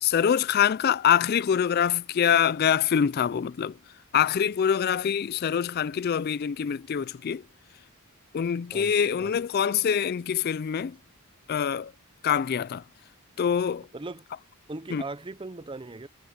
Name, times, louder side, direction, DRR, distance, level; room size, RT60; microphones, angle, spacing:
voice 1, 0.0-3.8 4.1-7.4 8.3-11.0 11.5-11.9 12.2-12.8 13.4-13.9 14.9-15.0, left 8 dB, 45° left, 0.3 m, -25 dB
voice 2, 8.7-9.4 13.9-14.3 14.7-16.1, right 2 dB, 20° right, 0.7 m, -39 dB
head